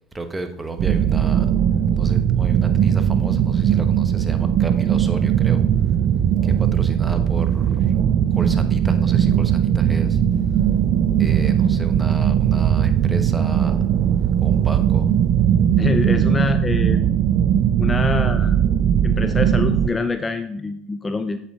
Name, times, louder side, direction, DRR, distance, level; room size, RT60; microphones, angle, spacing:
voice 1, 0.1-1.5 2.0-5.6 6.4-7.9 8.3-10.2 11.2-13.8 14.4-15.1, right 3 dB, 15° right, 7 dB, 1.0 m, -32 dB
sound 1, 0.8-19.9, right 9 dB, 50° right, 0.4 m, -19 dB
voice 2, 15.8-17.1 17.8-18.6 19.0-21.4, left 3 dB, 20° left, 10 dB, 0.4 m, -25 dB
8.0 x 6.4 x 3.6 m, 0.71 s
hypercardioid pair, 90°, 0 cm